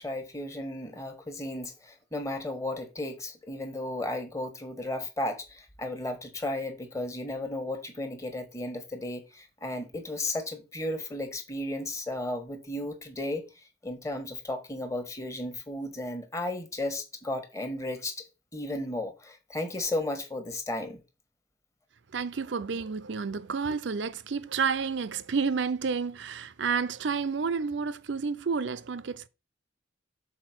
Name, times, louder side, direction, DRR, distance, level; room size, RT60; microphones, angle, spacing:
voice 1, 0.0-13.4 13.8-18.2 18.5-21.0, left 1 dB, 15° left, 1.3 m, -34 dB
voice 2, 22.1-29.3, right 5 dB, 70° right, 0.5 m, -30 dB
6.3 x 4.3 x 6.0 m
head